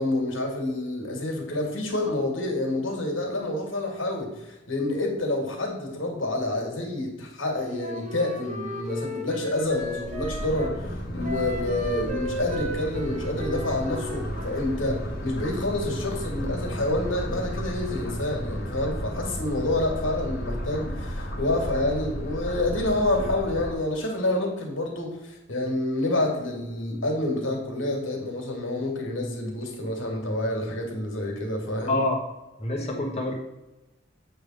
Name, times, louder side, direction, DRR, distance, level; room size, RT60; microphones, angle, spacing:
voice 1, 0.0-31.9, left 1 dB, 85° left, 1 dB, 2.1 m, -28 dB
Wind instrument woodwind instrument, 7.8-10.8 11.2-14.7, equal, 40° right, 1.2 m, -35 dB
sound 1, 9.7-23.7, equal, 55° left, 1.6 m, -33 dB
voice 2, 31.9-32.2 32.6-33.3, left 2 dB, 35° left, -1 dB, 1.3 m, -26 dB
8.3 x 3.4 x 6.4 m, 1.0 s
head